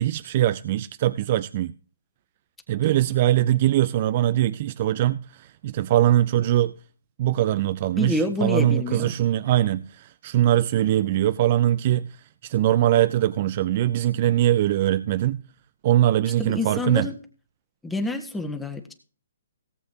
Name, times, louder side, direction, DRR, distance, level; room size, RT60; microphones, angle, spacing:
voice 1, 0.0-1.7 2.7-6.7 7.2-12.2 12.4-15.4 15.8-17.1, right 13 dB, 40° right, 0.5 m, -22 dB
voice 2, 8.0-9.2 16.4-17.2 17.8-18.9, left 2 dB, 5° left, 1.5 m, -27 dB
18.0 x 7.7 x 2.8 m
hypercardioid pair, 140°, 0 cm